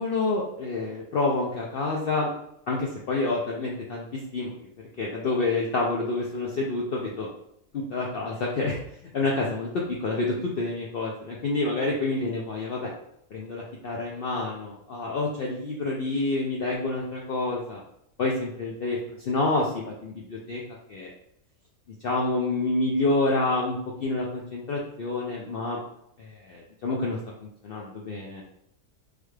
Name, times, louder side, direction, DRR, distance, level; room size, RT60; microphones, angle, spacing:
voice 1, 0.0-2.3 2.7-4.5 5.0-7.3 7.7-8.8 9.1-12.9 13.3-17.8 18.2-20.6 20.9-21.1 22.0-25.8 26.2-27.2 27.6-28.4, left 2 dB, 85° left, -2 dB, 0.5 m, -28 dB
3.4 x 2.3 x 3.1 m, 0.74 s
omnidirectional pair, 1.5 m